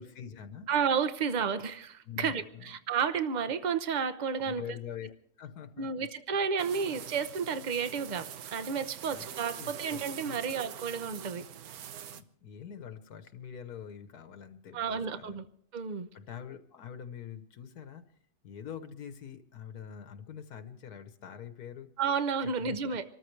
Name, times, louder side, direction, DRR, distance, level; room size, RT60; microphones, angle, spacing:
voice 1, 0.0-0.7 2.0-2.7 4.4-5.1 5.4-6.1 6.9-7.0 9.1-9.2 9.5-10.4 12.1-15.4 16.1-18.0 18.4-21.9 22.5-22.8, left 8 dB, 75° left, 9 dB, 1.5 m, -45 dB
voice 2, 0.7-4.6 5.8-11.4 14.7-15.4 15.7-16.1 22.0-23.0, right 6 dB, 35° right, 11 dB, 0.8 m, -31 dB
Large Swarm of Buzzing Flies, 6.6-12.2, right 9 dB, 75° right, 1.3 m, -44 dB
26.5 x 14.0 x 3.2 m, 0.62 s
omnidirectional pair, 1.6 m